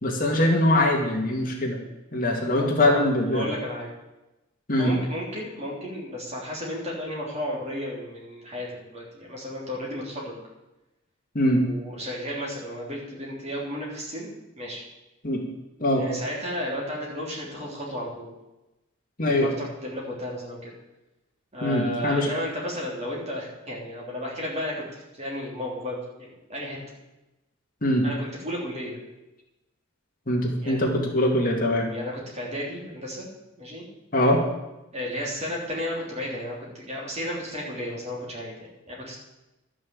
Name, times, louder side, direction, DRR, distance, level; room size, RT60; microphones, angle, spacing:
voice 1, 0.0-1.8 2.1-3.5 4.7-4.9 11.3-11.6 15.2-15.4 15.8-16.0 19.2-19.5 21.6-22.3 27.8-28.0 30.3-31.9 34.1-34.4, left 1 dB, 40° left, 0 dB, 2.1 m, -22 dB
voice 2, 2.6-3.9 4.8-10.4 11.6-14.3 14.6-14.8 15.9-18.3 19.2-20.7 21.5-26.8 28.0-29.0 30.6-30.8 31.9-33.3 33.6-33.9 34.9-39.2, left 1 dB, 30° right, -3 dB, 3.4 m, -33 dB
12.0 x 6.2 x 7.8 m, 1.0 s
head